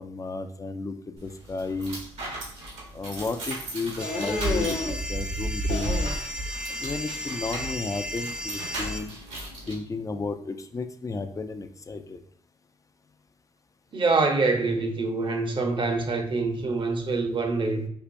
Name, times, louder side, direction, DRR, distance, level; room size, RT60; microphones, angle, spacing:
voice 1, 0.0-2.0 2.9-6.1 6.8-9.1 9.7-12.2, left 3 dB, 30° left, 0.5 m, -33 dB
sound 1, 1.2-9.8, right 1 dB, 80° right, 1.2 m, -34 dB
sound 2, 4.0-5.0 5.7-6.4 6.7-7.5, left 3 dB, 65° left, 0.8 m, -31 dB
sound 3, 4.0-9.0, left 1 dB, 10° right, 0.6 m, -35 dB
voice 2, 13.9-17.9, right 3 dB, 45° right, 0.7 m, -25 dB
4.5 x 2.4 x 2.6 m
supercardioid pair, 50°, 12 cm